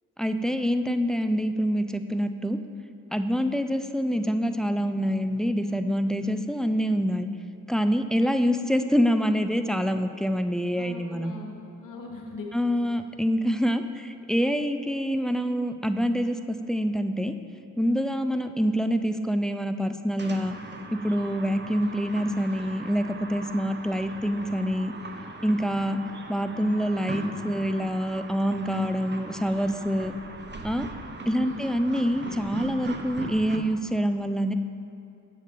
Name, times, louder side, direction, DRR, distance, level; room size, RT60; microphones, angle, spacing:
voice 1, 0.2-2.6 3.1-7.3 7.7-11.3 12.5-17.3 17.8-20.6 20.9-24.9 25.4-26.0 26.3-30.1 30.6-30.9 31.3-34.5, equal, ahead, 8 dB, 0.3 m, -26 dB
voice 2, 10.8-12.5 31.4-31.7, left 3 dB, 85° left, 1 dB, 1.0 m, -41 dB
sound 1, 20.2-33.6, right 2 dB, 35° right, 0.6 m, -39 dB
7.5 x 6.5 x 3.6 m, 2.7 s
cardioid pair, 60°, 31 cm